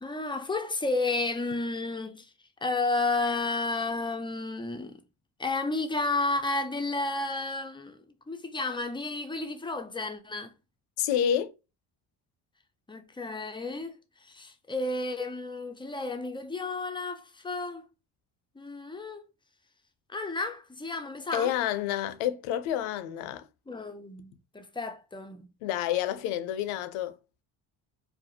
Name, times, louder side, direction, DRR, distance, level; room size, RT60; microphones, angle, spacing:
voice 1, 0.0-2.3 2.6-5.0 5.4-10.5 12.9-17.8 18.6-19.2 20.1-21.5 23.7-25.5, left 3 dB, 10° left, 0.3 m, -32 dB
voice 2, 11.0-11.5 21.3-23.5 25.6-27.1, left 10 dB, 80° left, 0.5 m, -29 dB
2.3 x 2.1 x 2.7 m
supercardioid pair, 60°, 50 cm